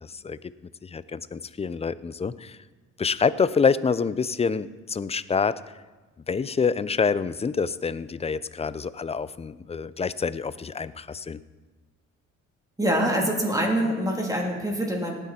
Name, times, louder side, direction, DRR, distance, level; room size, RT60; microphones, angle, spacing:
voice 1, 0.0-0.4 0.8-2.6 3.0-5.6 6.3-11.4, left 5 dB, 20° left, 16 dB, 0.5 m, -26 dB
voice 2, 12.8-15.1, equal, 10° right, 0 dB, 3.1 m, -25 dB
18.0 x 10.0 x 4.4 m, 1.2 s
cardioid pair, 90°, 30 cm